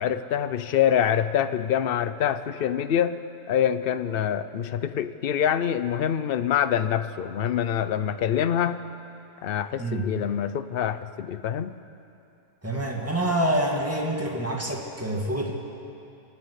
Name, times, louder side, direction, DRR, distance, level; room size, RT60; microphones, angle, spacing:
voice 1, 0.0-3.2 3.5-8.8 9.4-11.7, left 9 dB, 55° left, 12 dB, 0.7 m, -25 dB
voice 2, 12.6-15.5, right 1 dB, 10° right, -1 dB, 2.4 m, -26 dB
28.0 x 11.0 x 8.3 m, 2.7 s
omnidirectional pair, 1.6 m